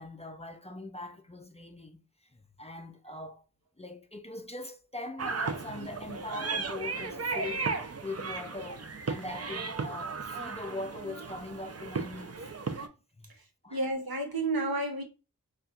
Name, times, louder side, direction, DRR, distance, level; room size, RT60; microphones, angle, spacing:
voice 1, 0.0-3.5 3.8-12.5 13.2-13.3 13.6-13.9, left 2 dB, 20° left, 0.4 m, -42 dB
sound 1, 5.2-12.9, right 4 dB, 45° right, 0.5 m, -35 dB
voice 2, 13.7-15.0, right 2 dB, 80° right, 0.9 m, -31 dB
4.2 x 2.4 x 2.4 m
wide cardioid pair, 40°, 36 cm